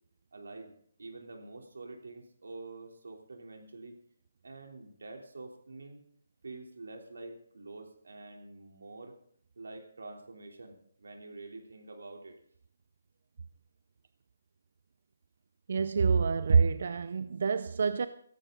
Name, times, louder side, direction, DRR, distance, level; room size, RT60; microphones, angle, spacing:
voice 1, 0.3-0.7 1.0-4.0 4.4-6.0 6.4-9.1 9.5-12.4, right 3 dB, 90° right, 3.4 m, -47 dB
voice 2, 15.7-18.1, right 5 dB, 45° right, 0.5 m, -26 dB
16.5 x 14.5 x 3.9 m
hypercardioid pair, 175°, 0 cm